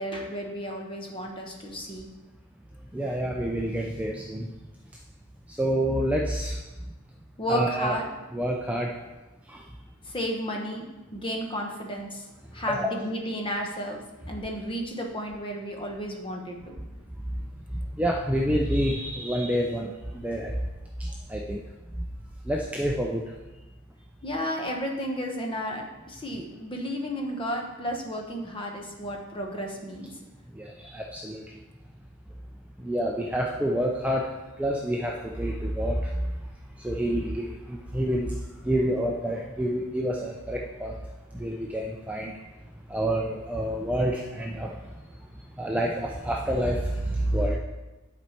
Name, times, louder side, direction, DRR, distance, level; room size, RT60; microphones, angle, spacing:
voice 1, 0.0-2.1 7.4-8.1 10.1-10.8 11.1-12.2 12.5-14.0 14.3-16.8 24.2-30.1, equal, 20° left, 1 dB, 0.9 m, -32 dB
voice 2, 2.9-4.5 5.5-6.6 7.5-8.0 8.3-8.9 9.5-9.6 12.7-12.9 18.0-19.9 20.1-20.5 21.3-21.6 22.5-23.3 30.5-31.4 32.8-34.3 34.6-36.0 36.8-38.3 38.6-41.0 41.3-42.3 42.9-44.7 45.6-47.6, equal, 5° right, -1 dB, 0.4 m, -28 dB
10.5 x 4.3 x 4.4 m, 1.1 s
head